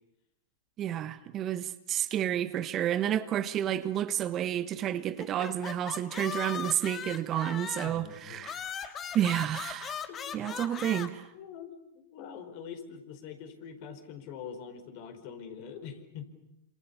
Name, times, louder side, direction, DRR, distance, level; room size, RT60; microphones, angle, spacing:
voice 1, 0.8-8.6 9.1-10.0 10.3-11.2, right 11 dB, 30° right, 1.3 m, -30 dB
sound 1, 5.2-8.0 8.4-11.1, left 7 dB, 25° left, 2.3 m, -39 dB
voice 2, 7.8-8.5 10.1-10.6 11.3-16.3, left 7 dB, 50° left, 5.0 m, -44 dB
28.5 x 27.0 x 7.1 m
hypercardioid pair, 105°, 0 cm